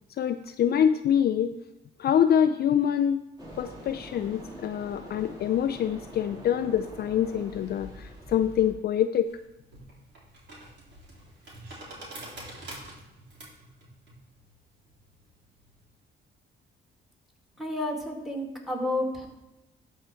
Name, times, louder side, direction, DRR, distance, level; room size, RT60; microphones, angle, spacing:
voice 1, 0.2-1.6 2.0-3.2 3.6-9.3, left 9 dB, 55° left, 10 dB, 0.4 m, -25 dB
sound 1, 3.4-8.7, equal, 20° right, 3.5 m, -44 dB
sound 2, 9.2-15.9, right 1 dB, 65° right, 3.5 m, -46 dB
voice 2, 17.6-19.3, left 1 dB, ahead, 1 dB, 2.2 m, -30 dB
13.0 x 4.6 x 4.5 m, 0.96 s
cardioid pair, 90°, 20 cm